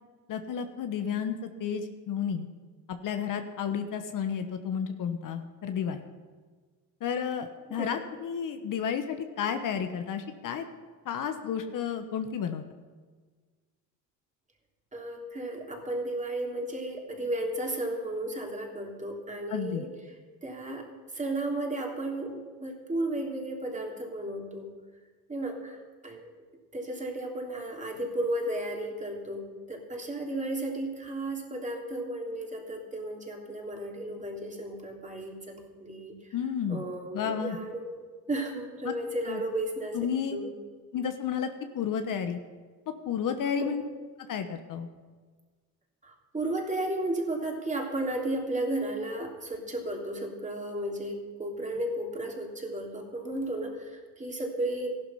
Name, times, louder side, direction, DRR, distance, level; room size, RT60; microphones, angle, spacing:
voice 1, 0.3-2.5 2.9-6.0 7.0-10.6 11.0-12.6 19.5-19.8 36.3-36.8 37.1-37.6 38.8-38.9 39.3-39.4 39.9-40.4 40.9-41.5 41.7-42.4 43.1-43.8 44.3-44.9, left 7 dB, 55° left, 7 dB, 1.2 m, -32 dB
voice 2, 14.9-19.9 20.4-20.9 21.1-24.7 25.3-25.8 26.0-26.3 26.7-36.2 36.7-40.0 40.3-40.5 43.6-43.8 46.0-54.9, right 1 dB, 20° right, 1 dB, 3.1 m, -34 dB
14.5 x 12.0 x 5.7 m, 1.4 s
supercardioid pair, 90°, 38 cm